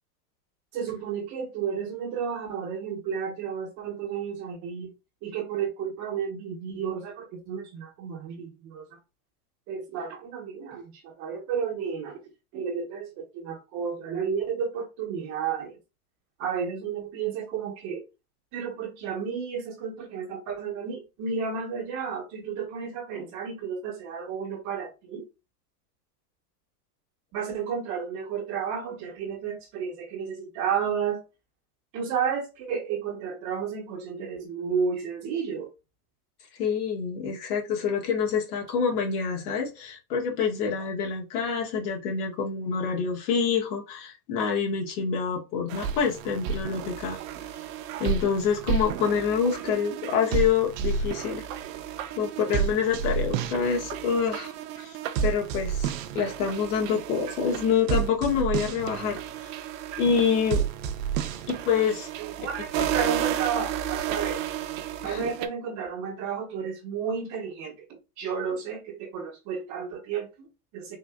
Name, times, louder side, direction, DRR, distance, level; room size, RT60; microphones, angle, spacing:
voice 1, 0.7-4.9 5.2-8.9 9.7-12.2 12.5-15.8 16.4-18.0 18.5-25.3 27.3-31.2 31.9-35.7 62.2-64.4 65.0-71.0, right 6 dB, 35° right, 0.9 m, -32 dB
voice 2, 36.5-47.2 48.0-51.4 52.2-55.0 55.2-59.5 60.0-60.6 61.5-62.1 65.0-65.3, left 6 dB, 70° left, 1.5 m, -27 dB
sound 1, 45.7-65.5, right 8 dB, 55° right, 0.6 m, -31 dB
3.7 x 2.6 x 2.2 m
supercardioid pair, 130°, 48 cm